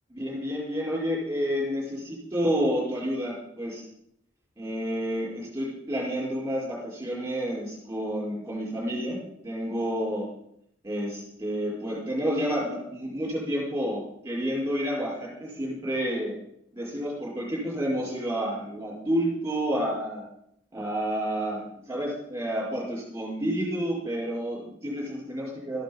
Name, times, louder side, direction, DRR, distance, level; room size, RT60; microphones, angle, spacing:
voice 1, 0.1-3.9 4.6-10.4 10.8-16.4 16.7-20.3 20.7-25.8, equal, 15° right, -5 dB, 5.1 m, -30 dB
14.0 x 10.0 x 5.4 m, 0.71 s
head